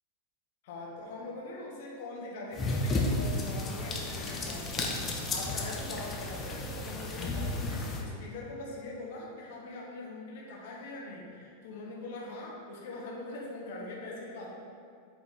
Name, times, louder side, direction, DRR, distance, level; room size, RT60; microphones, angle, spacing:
voice 1, 0.6-14.5, left 2 dB, 50° left, -3 dB, 1.6 m, -42 dB
sound 1, 2.5-8.0, left 2 dB, 20° left, 0.9 m, -33 dB
8.0 x 5.0 x 4.1 m, 2.3 s
figure-of-eight pair, 90°, 0 cm